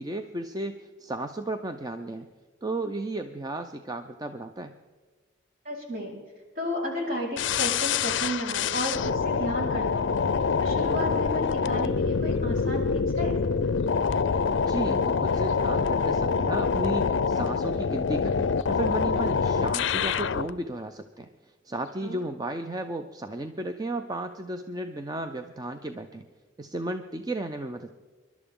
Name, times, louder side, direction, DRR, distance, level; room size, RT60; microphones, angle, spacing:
voice 1, 0.0-2.3 2.6-4.8 14.7-26.3 26.6-28.0, right 2 dB, 20° right, 7 dB, 0.5 m, -34 dB
voice 2, 5.6-6.1 6.5-10.2 10.6-13.4 22.0-22.2, equal, 45° right, -3 dB, 4.3 m, -33 dB
sound 1, 7.4-20.5, left 5 dB, 65° left, 0.4 m, -26 dB
25.0 x 12.0 x 3.7 m, 1.4 s
head